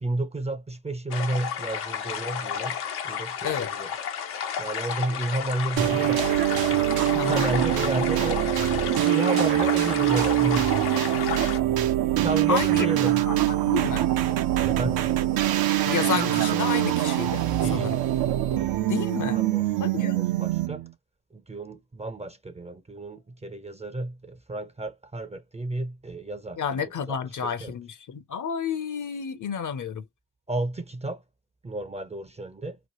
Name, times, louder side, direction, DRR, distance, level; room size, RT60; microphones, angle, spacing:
voice 1, 0.0-2.8 3.0-3.9 4.6-6.3 6.7-6.9 7.3-8.4 9.0-10.7 11.0-11.2 12.2-13.3 14.7-15.0 17.6-17.9 18.5-18.7 19.3-19.6 20.0-20.8 21.3-27.2 27.4-27.7 30.5-31.2 31.6-32.8, right 2 dB, 15° right, 0.5 m, -32 dB
sound 1, 1.1-11.6, left 8 dB, 80° left, 1.0 m, -32 dB
sound 2, 5.8-20.9, right 13 dB, 70° right, 0.7 m, -24 dB
voice 2, 7.1-7.5 12.5-12.9 13.2-13.4 13.6-14.1 15.9-17.4 17.7-18.0 18.9-19.4 19.8-20.2 26.6-30.0, left 7 dB, 50° left, 0.7 m, -30 dB
3.1 x 2.2 x 3.0 m
supercardioid pair, 50°, 39 cm